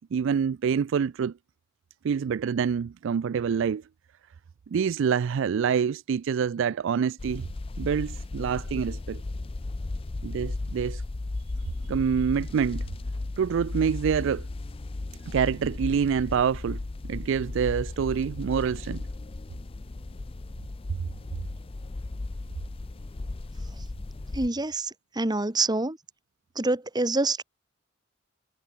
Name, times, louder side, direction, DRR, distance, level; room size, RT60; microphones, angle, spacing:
voice 1, 0.1-1.3 2.0-3.8 4.7-7.4 7.8-9.2 10.2-11.0 11.9-12.8 13.4-14.5 15.3-16.8 17.1-19.0, right 7 dB, 65° right, 0.4 m, -26 dB
sound 1, 7.2-24.5, left 2 dB, 30° left, 0.5 m, -35 dB
voice 2, 24.3-26.0 26.5-27.4, right 2 dB, 20° right, 1.5 m, -26 dB
head